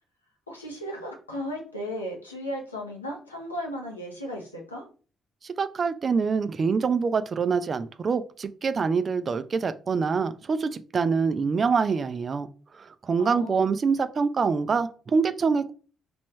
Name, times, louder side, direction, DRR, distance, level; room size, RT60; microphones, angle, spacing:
voice 1, 0.5-4.9 13.2-13.7, equal, 85° left, 0 dB, 0.7 m, -35 dB
voice 2, 5.4-12.5 12.8-15.7, right 5 dB, 40° right, 11 dB, 0.3 m, -25 dB
3.1 x 3.0 x 3.1 m, 0.37 s
figure-of-eight pair, 40°, 0 cm